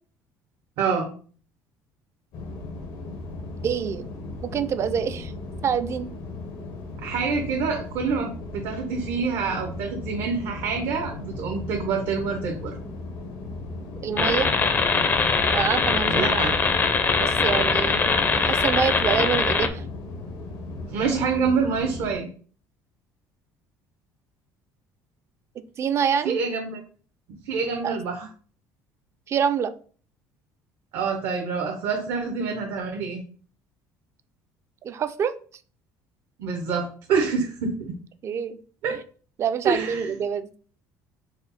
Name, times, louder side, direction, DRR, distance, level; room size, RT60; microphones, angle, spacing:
voice 1, 0.8-1.1 7.0-12.7 16.1-16.6 20.9-22.3 26.2-26.8 27.5-28.3 30.9-33.2 36.4-37.9 38.8-39.0 39.6-40.1, right 5 dB, 75° right, 3 dB, 0.8 m, -26 dB
sound 1, 2.3-22.1, left 2 dB, 70° left, 0.8 m, -36 dB
voice 2, 3.6-4.1 4.4-5.3 5.6-6.1 14.0-14.5 15.5-16.4 17.2-19.8 25.8-26.4 27.8-28.0 29.3-29.7 34.8-35.3 38.2-38.6 39.4-40.5, right 7 dB, 40° right, 12 dB, 0.3 m, -26 dB
sound 2, 14.2-19.7, left 4 dB, 25° left, 0.4 m, -22 dB
4.2 x 2.0 x 4.0 m, 0.42 s
cardioid pair, 115°, 7 cm